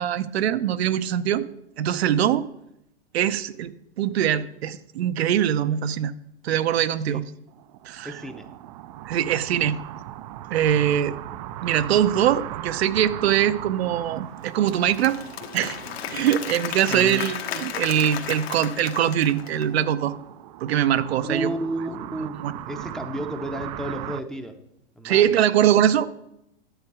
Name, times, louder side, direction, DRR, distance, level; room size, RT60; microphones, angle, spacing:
voice 1, 0.0-1.4 1.8-2.4 3.1-6.1 6.4-7.2 7.9-8.1 9.1-9.8 10.5-11.2 11.6-15.2 15.5-15.8 16.1-20.1 20.6-21.5 22.4-22.5 25.0-26.1, right 10 dB, 75° right, 12 dB, 0.7 m, -22 dB
sound 1, 7.5-24.2, right 13 dB, 40° right, 0.4 m, -39 dB
voice 2, 8.0-8.5 16.9-17.3 21.3-22.4 22.7-24.6 25.0-25.3, right 1 dB, ahead, 5 dB, 0.6 m, -31 dB
Applause / Crowd, 14.4-19.8, left 10 dB, 70° left, 1.4 m, -34 dB
11.5 x 8.2 x 4.8 m, 0.80 s
hypercardioid pair, 135°, 32 cm